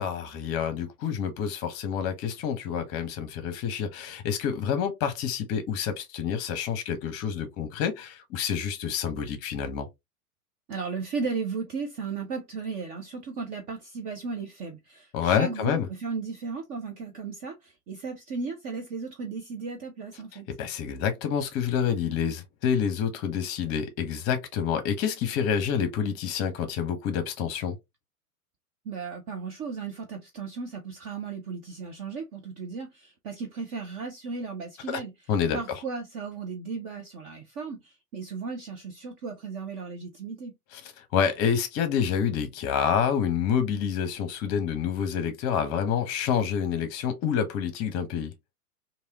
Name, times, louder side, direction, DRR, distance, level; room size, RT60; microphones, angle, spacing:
voice 1, 0.0-9.9 15.1-15.9 20.6-27.8 34.9-35.0 35.3-35.6 40.7-40.8 41.1-48.3, left 7 dB, 30° left, 0.9 m, -28 dB
voice 2, 10.7-20.5 28.9-35.1 35.5-40.5, right 4 dB, 20° right, 0.4 m, -35 dB
3.3 x 2.8 x 2.8 m
figure-of-eight pair, 100°, 45 cm